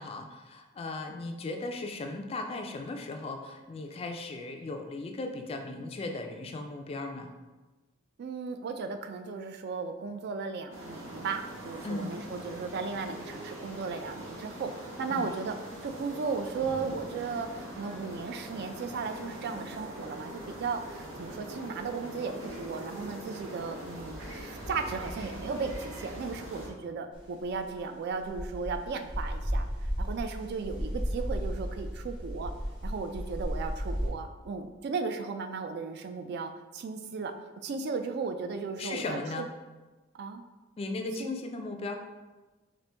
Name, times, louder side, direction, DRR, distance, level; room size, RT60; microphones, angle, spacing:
voice 1, 0.0-7.3 11.8-12.1 15.1-15.3 38.8-39.5 40.8-42.0, left 2 dB, 30° left, 4 dB, 0.3 m, -37 dB
voice 2, 8.2-15.5 15.8-29.7 30.0-32.5 32.8-39.4 40.1-40.4 41.2-41.3, right 4 dB, 55° right, 7 dB, 0.3 m, -36 dB
sound 1, 10.7-26.7, right 1 dB, 80° right, 0.9 m, -42 dB
sound 2, 27.1-34.1, equal, 25° right, 1.1 m, -34 dB
4.3 x 2.5 x 3.3 m, 1.2 s
head